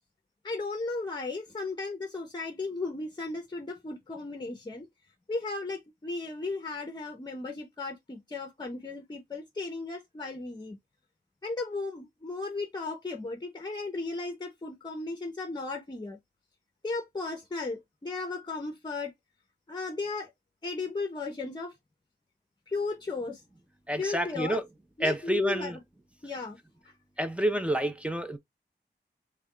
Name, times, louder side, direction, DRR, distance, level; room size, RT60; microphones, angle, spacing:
voice 1, 0.4-4.9 5.3-10.8 11.4-16.2 16.8-19.1 19.7-20.3 20.6-21.7 22.7-23.4 24.0-24.6 25.0-25.8 26.2-26.6, left 3 dB, 25° left, 0.7 m, -35 dB
voice 2, 23.9-24.6 25.0-25.8 27.2-28.4, right 1 dB, 5° right, 0.5 m, -29 dB
3.4 x 2.2 x 3.7 m
wide cardioid pair, 115°, 18 cm